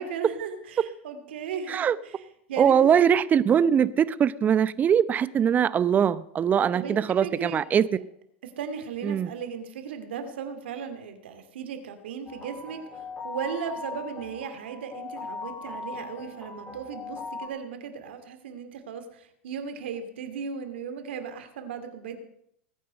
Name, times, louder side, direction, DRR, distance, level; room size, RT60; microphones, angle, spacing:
voice 1, 0.0-2.2 2.5-2.9 6.7-7.6 8.4-22.2, right 6 dB, 75° right, 2.5 m, -36 dB
voice 2, 2.6-7.9 9.0-9.3, right 8 dB, 30° right, 0.8 m, -22 dB
sound 1, 12.3-17.5, left 4 dB, 20° left, 4.5 m, -39 dB
20.0 x 9.3 x 5.3 m
hypercardioid pair, 100°, 6 cm